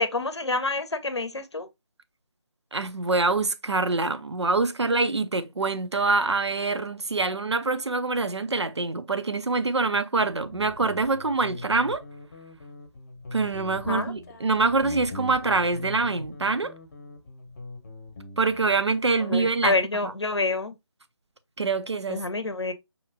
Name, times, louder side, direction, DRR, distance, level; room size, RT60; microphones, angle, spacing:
voice 1, 0.0-1.7 13.9-14.1 19.2-20.7 22.1-22.7, left 3 dB, 85° left, 0.7 m, -27 dB
voice 2, 2.7-12.0 13.3-16.7 18.4-19.8 20.0-20.1 21.6-22.2, right 3 dB, 85° right, 0.5 m, -25 dB
Guitar, 10.2-18.7, left 2 dB, 40° left, 0.8 m, -41 dB
5.4 x 2.9 x 2.6 m
figure-of-eight pair, 155°, 14 cm